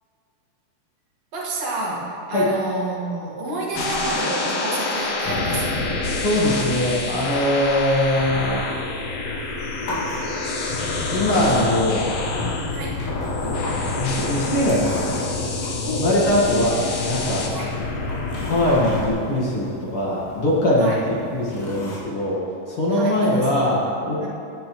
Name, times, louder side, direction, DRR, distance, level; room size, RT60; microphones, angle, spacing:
voice 1, 1.3-5.9 12.7-13.0 15.8-16.4 17.5-17.7 20.8-21.0 22.9-23.7 24.2-24.3, right 2 dB, 50° right, -4 dB, 2.6 m, -29 dB
sound 1, 3.7-19.1, left 3 dB, 70° left, 1.6 m, -27 dB
voice 2, 6.2-8.6 11.1-12.5 13.4-15.2 16.0-17.4 18.5-22.4 22.7-24.2, left 1 dB, 50° left, -5 dB, 1.9 m, -22 dB
sound 2, 9.4-22.0, left 1 dB, 90° left, 4.0 m, -39 dB
16.5 x 9.5 x 3.1 m, 2.7 s
omnidirectional pair, 4.2 m